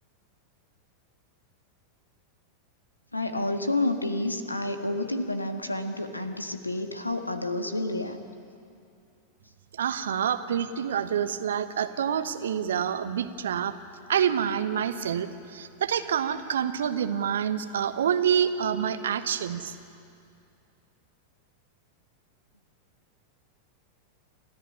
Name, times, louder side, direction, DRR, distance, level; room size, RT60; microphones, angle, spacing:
voice 1, 3.1-8.2, left 2 dB, 85° left, 7 dB, 1.5 m, -29 dB
voice 2, 9.7-13.7 14.1-19.8, right 8 dB, 65° right, 11 dB, 1.1 m, -27 dB
30.0 x 14.0 x 9.8 m, 2.5 s
figure-of-eight pair, 90°, 0 cm